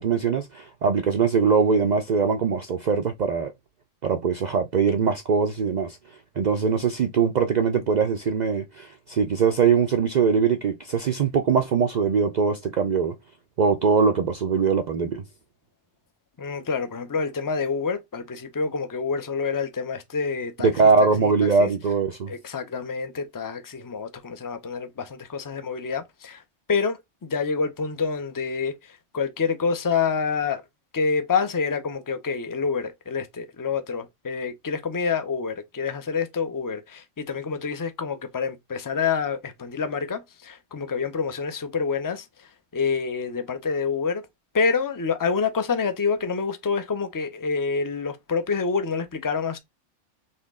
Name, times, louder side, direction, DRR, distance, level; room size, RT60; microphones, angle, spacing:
voice 1, 0.0-3.5 4.0-6.0 6.4-13.1 13.6-15.2 20.6-22.3, right 5 dB, 65° right, 0.4 m, -22 dB
voice 2, 16.4-20.7 21.2-21.3 21.6-21.7 22.3-26.4 26.7-30.6 30.9-44.3 44.5-49.6, left 5 dB, 35° left, 0.3 m, -27 dB
4.2 x 3.0 x 3.6 m
omnidirectional pair, 1.3 m